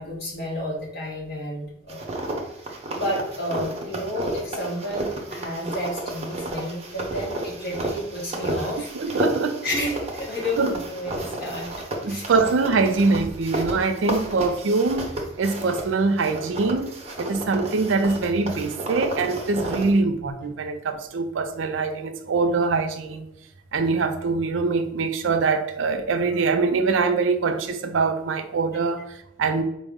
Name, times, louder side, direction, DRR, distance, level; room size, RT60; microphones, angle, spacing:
voice 1, 0.0-2.0 2.7-9.1 9.6-11.7 12.1-12.2, equal, 55° left, 1.2 m, -31 dB
sound 1, 1.9-15.9 16.2-20.0, right 1 dB, 35° right, 0.7 m, -32 dB
voice 2, 8.9-9.6 10.6-10.7 12.0-15.1 15.4-16.9 17.2-23.3 23.7-29.6, right 4 dB, 70° right, 0.4 m, -23 dB
4.1 x 2.0 x 3.5 m
head